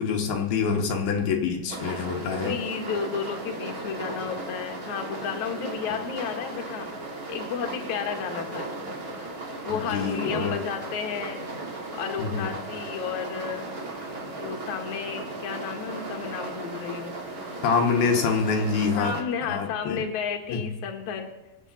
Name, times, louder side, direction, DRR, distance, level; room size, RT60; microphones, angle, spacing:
voice 1, 0.0-2.6 9.7-10.6 12.2-12.5 17.6-19.1 19.5-20.0 20.5-20.7, left 5 dB, 75° left, 2 dB, 3.1 m, -26 dB
sound 1, 1.7-19.2, right 2 dB, 25° right, 2.3 m, -36 dB
voice 2, 2.2-8.7 9.7-11.4 11.9-13.7 14.4-17.2 19.0-21.3, left 7 dB, 55° left, 2 dB, 2.7 m, -32 dB
24.5 x 8.4 x 4.2 m, 1.0 s
omnidirectional pair, 4.4 m